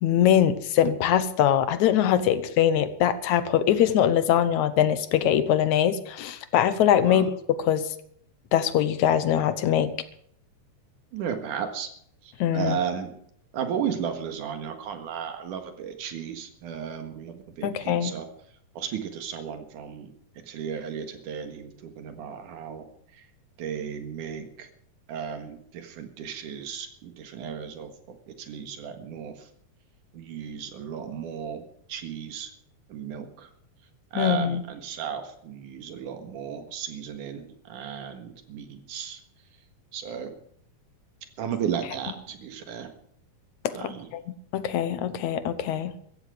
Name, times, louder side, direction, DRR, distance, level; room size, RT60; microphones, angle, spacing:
voice 1, 0.0-7.3 7.6-7.9 8.5-9.9 12.4-12.8 17.6-18.1 34.1-34.6 43.6-45.9, left 10 dB, 75° left, 13 dB, 2.2 m, -23 dB
voice 2, 11.1-11.9 12.2-13.1 13.5-18.3 18.8-20.1 20.5-22.8 23.1-23.2 23.6-24.7 25.1-29.5 30.1-32.5 32.9-33.5 34.1-39.2 39.9-40.3 41.4-42.9 43.7-44.1, right 8 dB, 85° right, 7 dB, 3.2 m, -34 dB
16.0 x 14.0 x 5.0 m, 0.66 s
omnidirectional pair, 3.5 m